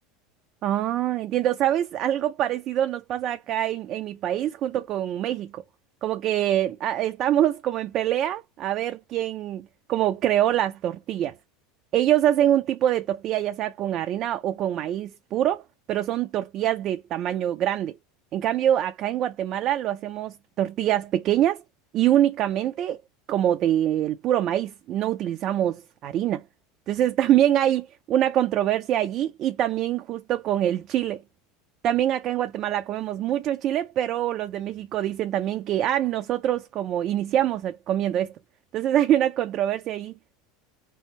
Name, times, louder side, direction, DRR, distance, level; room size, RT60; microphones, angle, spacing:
voice 1, 0.6-5.6 6.0-11.3 11.9-15.6 15.9-17.9 18.3-21.6 21.9-23.0 23.3-26.4 26.9-31.2 31.8-38.3 38.7-40.1, right 11 dB, 45° right, 0.4 m, -24 dB
3.4 x 2.7 x 3.2 m
hypercardioid pair, 85°, 0 cm